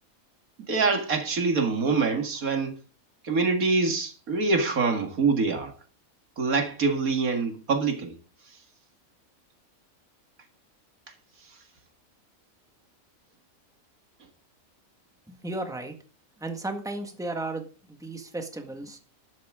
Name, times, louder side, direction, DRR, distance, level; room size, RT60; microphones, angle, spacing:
voice 1, 0.7-2.8 3.2-5.7 6.4-8.1, right 4 dB, 75° right, 2.4 m, -25 dB
voice 2, 15.3-15.9 16.4-17.7 18.0-19.0, right 2 dB, ahead, 1.7 m, -34 dB
13.0 x 12.0 x 3.7 m
omnidirectional pair, 1.5 m